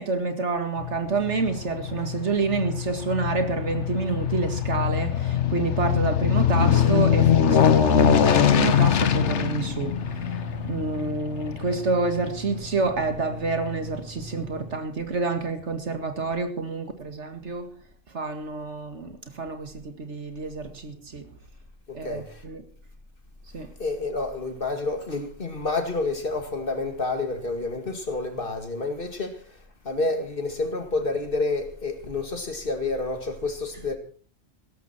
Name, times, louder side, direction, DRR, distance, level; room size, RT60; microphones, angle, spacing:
voice 1, 0.0-10.4 10.7-17.7 18.1-21.3 21.9-22.6 23.5-23.7, right 4 dB, 70° right, 2.2 m, -28 dB
Aircraft, 0.8-13.3 13.7-13.8, left 8 dB, 70° left, 1.2 m, -23 dB
sound 1, 8.3-17.1, equal, 10° right, 2.4 m, -42 dB
voice 2, 21.9-22.5 23.8-34.0, left 3 dB, 50° left, 2.2 m, -29 dB
16.5 x 13.5 x 4.4 m
omnidirectional pair, 1.2 m